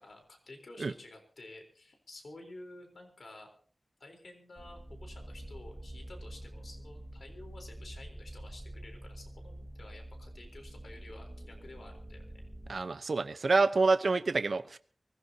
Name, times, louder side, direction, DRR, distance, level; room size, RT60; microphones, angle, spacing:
voice 1, 0.0-3.5 4.0-12.3, left 2 dB, 85° left, 3 dB, 4.0 m, -51 dB
sound 1, 4.6-12.7, right 1 dB, 30° right, 1.8 m, -46 dB
voice 2, 12.7-14.8, right 3 dB, 80° right, 11 dB, 0.9 m, -27 dB
24.0 x 17.0 x 2.9 m, 0.43 s
wide cardioid pair, 65°, 0 cm